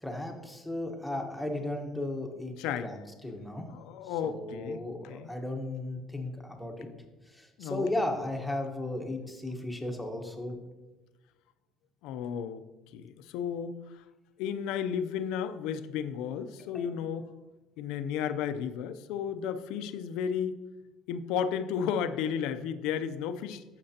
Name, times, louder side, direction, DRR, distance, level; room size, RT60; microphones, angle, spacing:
voice 1, 0.0-2.6 2.8-3.6 4.2-6.9 7.3-10.6 16.7-16.8, left 1 dB, 5° left, 2 dB, 1.1 m, -35 dB
voice 2, 2.6-2.9 3.7-5.3 7.6-7.9 12.0-12.6 12.9-13.8 14.4-17.3 17.8-20.6 21.1-23.6, left 8 dB, 80° left, 11 dB, 0.5 m, -33 dB
11.5 x 6.7 x 2.8 m, 1.1 s
cardioid pair, 135°, 0 cm